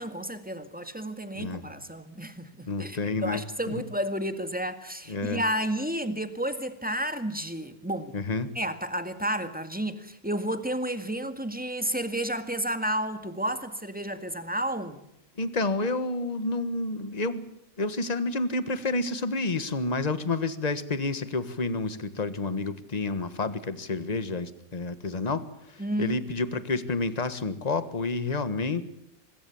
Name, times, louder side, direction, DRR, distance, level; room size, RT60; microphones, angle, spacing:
voice 1, 0.0-8.1 8.6-15.0 25.8-26.2, right 1 dB, 5° right, 1.8 m, -31 dB
voice 2, 2.7-3.7 5.1-5.4 8.1-8.5 15.4-17.5 17.8-28.8, left 3 dB, 30° left, 1.5 m, -29 dB
24.5 x 22.0 x 7.2 m
omnidirectional pair, 1.5 m